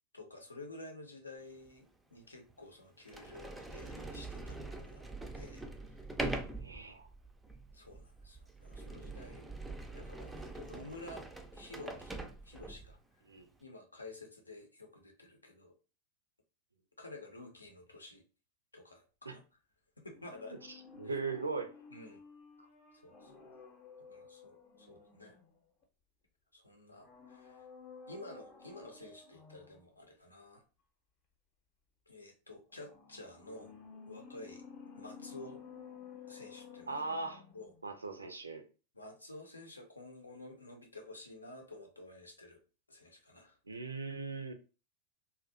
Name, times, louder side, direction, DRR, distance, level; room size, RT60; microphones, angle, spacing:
voice 1, 0.1-5.0 5.3-5.6 7.7-9.5 9.9-11.3 11.5-12.1 12.4-13.0 13.6-15.7 17.0-18.2 18.7-19.4 20.0-20.6 21.0-21.1 21.9-22.2 23.0-23.3 24.1-25.4 26.5-27.7 28.1-30.6 32.1-33.7 34.1-34.6 35.0-35.6 36.3-37.0 37.5-37.7 38.9-42.6 42.9-43.6, left 2 dB, 80° left, 0.5 m, -51 dB
Sliding door, 1.7-1.8 2.5-2.6 3.0-13.0, right 2 dB, 10° right, 0.3 m, -43 dB
voice 2, 6.6-7.1 13.3-13.5 19.3-19.4 21.0-21.7 36.9-37.4 37.8-38.6 43.7-44.5, right 4 dB, 80° right, 0.4 m, -39 dB
sound 1, 20.1-25.8 26.9-29.9 32.7-37.9 38.2-38.3, left 6 dB, 35° left, 0.6 m, -53 dB
2.4 x 2.1 x 2.5 m
figure-of-eight pair, 90°, 0 cm